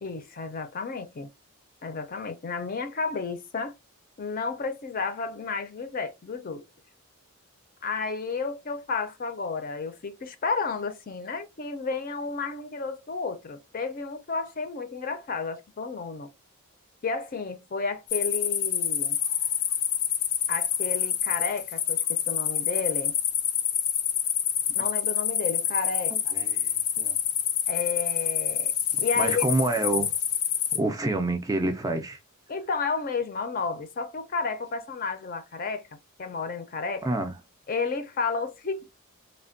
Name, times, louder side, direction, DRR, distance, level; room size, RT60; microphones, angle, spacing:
voice 1, 0.0-1.3 1.8-3.7 4.2-6.6 7.8-16.3 17.0-19.2 20.5-23.1 24.8-26.3 27.7-28.7 29.0-29.4 32.5-35.8 36.2-37.1 37.7-38.8, left 4 dB, 40° left, 0.5 m, -32 dB
sound 1, 18.1-30.8, left 10 dB, 90° left, 0.5 m, -27 dB
voice 2, 26.1-26.7 27.0-27.2 29.2-30.1 30.7-32.2 37.0-37.4, right 2 dB, 15° right, 0.4 m, -27 dB
3.2 x 2.1 x 2.5 m
head